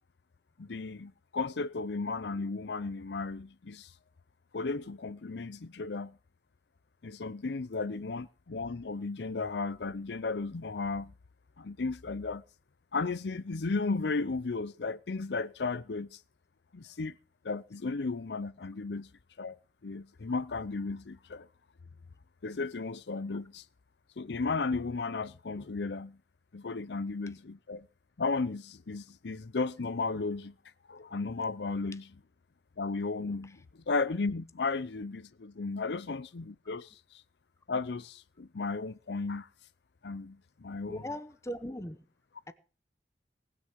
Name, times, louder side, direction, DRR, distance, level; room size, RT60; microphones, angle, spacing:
voice 1, 0.6-3.9 4.5-6.2 7.0-11.1 11.6-12.4 12.9-16.2 16.7-17.2 17.4-19.1 19.4-21.5 22.4-23.6 24.2-26.2 26.5-27.9 28.2-30.5 30.9-32.2 32.8-37.2 37.7-39.5 40.0-41.0, left 3 dB, 75° left, 0.6 m, -34 dB
voice 2, 40.9-42.0 42.5-42.6, equal, 15° left, 0.9 m, -39 dB
19.0 x 6.6 x 7.4 m
head